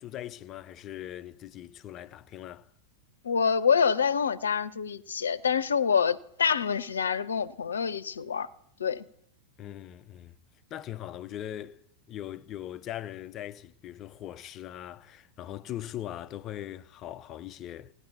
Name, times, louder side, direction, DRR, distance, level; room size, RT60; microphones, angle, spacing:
voice 1, 0.0-2.7 9.6-10.3 10.7-11.8 12.1-17.9, left 12 dB, 35° left, 0.5 m, -40 dB
voice 2, 3.2-8.5 8.8-9.0, left 6 dB, 70° left, 0.7 m, -26 dB
17.0 x 9.9 x 8.4 m
figure-of-eight pair, 90°, 0 cm